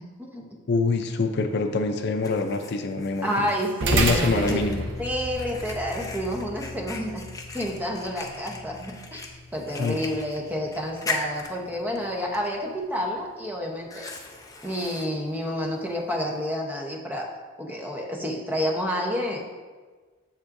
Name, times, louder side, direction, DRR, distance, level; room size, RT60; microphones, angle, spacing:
voice 1, 0.7-3.5 3.9-4.8 9.8-10.0, left 3 dB, 60° left, 6 dB, 0.5 m, -25 dB
Fire, 1.5-16.5, left 3 dB, 20° left, 0.6 m, -40 dB
voice 2, 3.2-4.6 5.0-7.3 7.5-14.1 14.6-17.3 17.6-19.4, equal, 10° right, 0 dB, 0.8 m, -29 dB
sound 1, 3.8-12.5, right 2 dB, 65° right, 0.8 m, -33 dB
7.3 x 7.1 x 2.6 m, 1.4 s
head